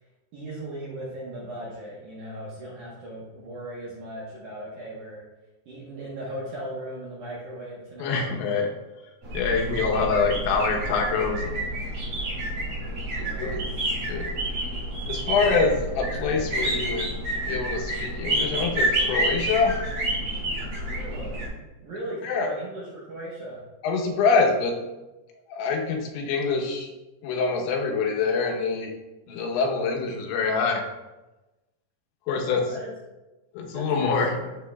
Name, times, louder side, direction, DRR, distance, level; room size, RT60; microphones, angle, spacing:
voice 1, 0.3-5.2 5.7-8.4 13.1-13.7 20.8-21.4 21.8-23.6 32.3-32.9 33.7-34.6, right 1 dB, 70° right, -5 dB, 1.9 m, -38 dB
voice 2, 8.0-8.7 9.3-12.0 13.2-13.6 14.1-14.3 15.1-17.2 17.5-19.7 22.2-22.5 23.8-24.8 25.5-26.9 27.2-28.9 29.3-30.8 32.3-32.6 33.5-34.3, left 4 dB, 90° left, 0 dB, 3.3 m, -25 dB
sound 1, 9.2-21.5, right 1 dB, 45° right, 2.2 m, -29 dB
9.1 x 7.4 x 2.3 m, 1.1 s
omnidirectional pair, 5.1 m